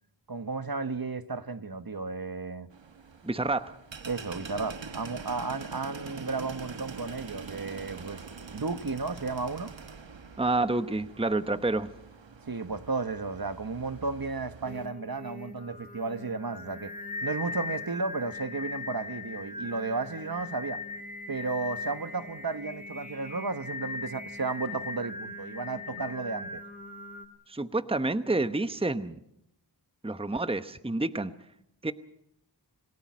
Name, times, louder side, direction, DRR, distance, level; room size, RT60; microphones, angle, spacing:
voice 1, 0.3-2.7 4.0-8.2 8.5-9.7 12.4-16.9 17.2-20.8 21.3-26.6, right 4 dB, 55° right, 1.4 m, -33 dB
sound 1, 2.7-14.9, right 5 dB, 85° right, 1.3 m, -44 dB
voice 2, 3.2-3.8 10.4-11.9 27.5-29.2 30.0-31.3 31.8-31.9, right 2 dB, 15° right, 0.9 m, -28 dB
Singing, 14.6-27.3, left 3 dB, 20° left, 2.1 m, -40 dB
27.5 x 17.5 x 6.2 m
wide cardioid pair, 45°, 44 cm